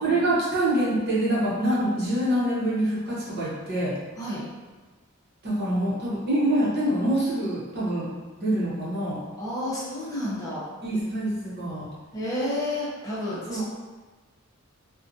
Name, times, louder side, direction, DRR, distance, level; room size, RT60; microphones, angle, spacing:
voice 1, 0.0-3.9 5.4-9.2 10.8-11.9 13.5-13.6, right 1 dB, 50° right, -8 dB, 0.8 m, -25 dB
voice 2, 9.4-10.6 12.1-13.6, left 1 dB, 15° left, -8 dB, 0.5 m, -30 dB
2.6 x 2.1 x 2.5 m, 1.3 s
head